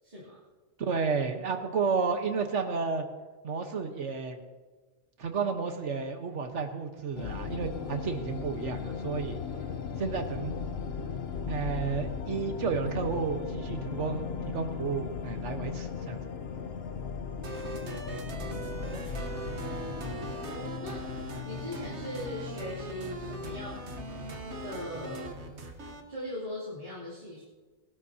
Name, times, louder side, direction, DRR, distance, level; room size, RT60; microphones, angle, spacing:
voice 1, 0.0-0.4 18.2-19.3 20.4-21.0 21.4-23.8 24.6-25.3 26.1-27.4, equal, 40° right, -11 dB, 3.3 m, -40 dB
voice 2, 0.8-3.0 3.4-4.4 5.2-9.4 10.0-10.5 11.5-16.3 20.2-20.3, right 5 dB, 85° right, 6 dB, 1.5 m, -32 dB
sound 1, 7.1-25.5, left 6 dB, 65° left, 1.0 m, -38 dB
sound 2, 17.4-26.0, right 2 dB, 70° right, 1.5 m, -40 dB
21.5 x 12.5 x 2.8 m, 1.4 s
omnidirectional pair, 1.2 m